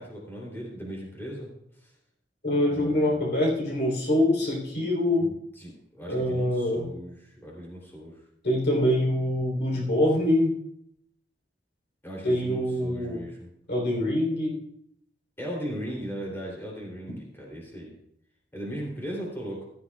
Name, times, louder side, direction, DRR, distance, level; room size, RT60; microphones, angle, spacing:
voice 1, 0.0-1.5 1.8-1.9 2.7-3.2 5.2-8.2 12.0-13.5 15.4-17.9 18.5-19.7, equal, 10° left, -3 dB, 3.2 m, -38 dB
voice 2, 2.4-5.3 6.1-6.9 8.4-10.5 12.2-13.2 13.7-14.6, left 1 dB, 60° left, 0 dB, 3.8 m, -24 dB
15.5 x 13.0 x 2.4 m, 0.73 s
head